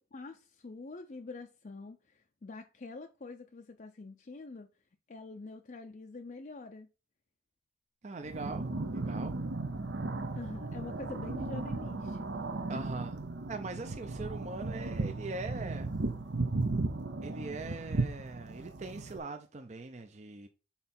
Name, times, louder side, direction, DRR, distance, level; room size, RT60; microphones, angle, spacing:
voice 1, 0.1-4.7 5.1-6.9 10.3-12.4 12.7-12.8, left 3 dB, 45° left, 0.4 m, -45 dB
voice 2, 8.0-9.4 12.7-13.2 13.5-15.9 17.2-20.5, right 3 dB, 40° right, 0.5 m, -41 dB
sound 1, 8.2-19.2, right 3 dB, 75° right, 0.8 m, -35 dB
5.6 x 4.4 x 4.2 m
head